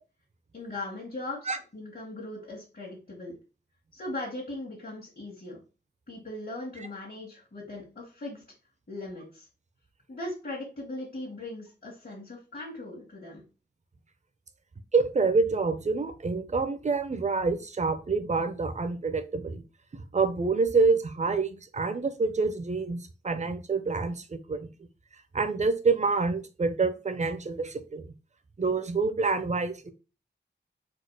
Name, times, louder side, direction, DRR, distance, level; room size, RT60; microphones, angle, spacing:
voice 1, 0.5-3.4 3.9-5.6 6.1-8.4 8.9-9.5 10.1-13.4, left 2 dB, 50° left, -4 dB, 1.7 m, -39 dB
voice 2, 14.9-19.6 20.1-24.7 25.3-28.0 28.6-29.9, right 4 dB, 40° right, 10 dB, 0.6 m, -27 dB
4.3 x 2.4 x 4.7 m, 0.32 s
wide cardioid pair, 120°, 19 cm